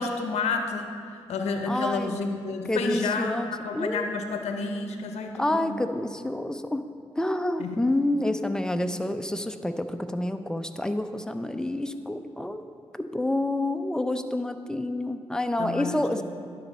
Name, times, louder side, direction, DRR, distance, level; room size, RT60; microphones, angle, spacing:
voice 1, 0.0-5.8 7.6-7.8 15.6-16.2, left 4 dB, 80° left, 5 dB, 0.7 m, -30 dB
voice 2, 1.7-2.2 2.7-3.5 3.7-4.1 5.4-6.9 7.2-12.6 12.9-16.2, left 1 dB, 5° left, 8 dB, 0.6 m, -28 dB
10.5 x 4.2 x 5.4 m, 2.4 s
supercardioid pair, 50°, 11 cm